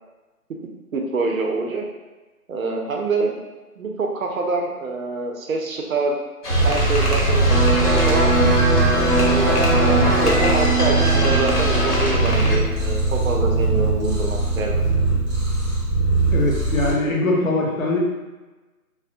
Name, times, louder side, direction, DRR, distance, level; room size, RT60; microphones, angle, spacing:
voice 1, 0.9-1.8 2.5-3.4 3.8-6.2 6.6-8.4 8.9-14.8, right 3 dB, 65° right, 1 dB, 0.5 m, -26 dB
sound 1, 6.4-12.6, left 1 dB, 85° left, 0.9 m, -26 dB
Purr, 6.5-16.9, right 2 dB, 20° right, 0.7 m, -21 dB
Electric guitar, 7.5-15.2, right 2 dB, ahead, 0.3 m, -24 dB
voice 2, 16.3-18.0, left 2 dB, 60° left, -2 dB, 0.7 m, -21 dB
2.3 x 2.0 x 2.5 m, 1.2 s
figure-of-eight pair, 170°, 45 cm